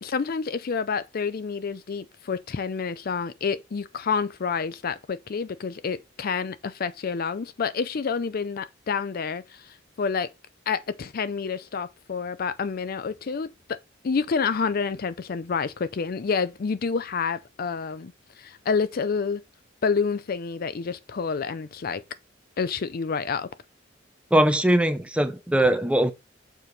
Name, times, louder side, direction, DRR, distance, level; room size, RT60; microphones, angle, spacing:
voice 1, 0.0-10.3 10.7-13.8 14.0-18.1 18.4-19.4 19.8-22.0 22.6-23.5, left 5 dB, 50° left, 0.4 m, -28 dB
voice 2, 24.3-26.1, right 1 dB, 5° right, 0.6 m, -21 dB
6.8 x 4.6 x 4.0 m
head